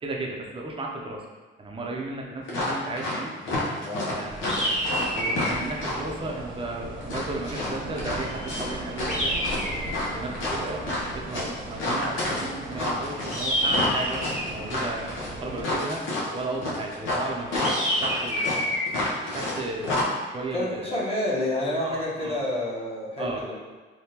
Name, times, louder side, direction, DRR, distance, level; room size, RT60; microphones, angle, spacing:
voice 1, 0.0-1.2 1.6-3.3 4.1-4.8 5.1-9.4 10.1-10.8 11.1-14.2 14.5-17.7 18.0-18.7 19.3-21.0 21.8-22.4 23.2-23.4, right 2 dB, 25° right, 0 dB, 0.5 m, -34 dB
sound 1, 2.5-3.2 3.4-6.1 7.0-9.2 9.4-19.6 19.8-20.0, left 2 dB, 80° left, 0.8 m, -29 dB
sound 2, 4.2-15.6, right 1 dB, 70° right, 0.6 m, -38 dB
sound 3, 4.5-5.6 9.1-10.1 13.3-14.6 17.6-18.9, equal, 5° right, 0.9 m, -27 dB
voice 2, 20.5-23.6, left 1 dB, 30° left, -6 dB, 1.0 m, -29 dB
3.4 x 2.2 x 2.8 m, 1.3 s
cardioid pair, 90°, 20 cm